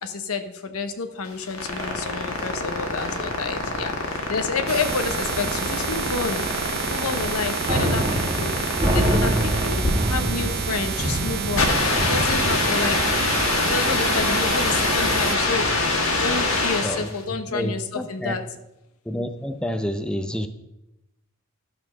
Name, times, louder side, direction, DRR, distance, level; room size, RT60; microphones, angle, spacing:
voice 1, 0.0-6.5 6.9-8.5 8.8-11.7 12.1-13.0 13.6-15.7 16.2-18.4, left 4 dB, 85° left, 9 dB, 0.9 m, -29 dB
sound 1, 1.2-17.2, left 2 dB, 65° left, 1.5 m, -25 dB
sound 2, 1.8-2.7 3.0-3.3 3.5-3.8 4.1-4.3 4.7-4.8 5.3-5.6 5.9-6.0 6.4-7.3 7.6-12.6, equal, 15° right, 1.8 m, -27 dB
sound 3, 4.7-15.4, right 6 dB, 50° right, 0.6 m, -29 dB
voice 2, 16.8-18.4 19.1-20.5, equal, 5° left, 8 dB, 0.4 m, -29 dB
12.0 x 4.4 x 6.0 m, 0.91 s
head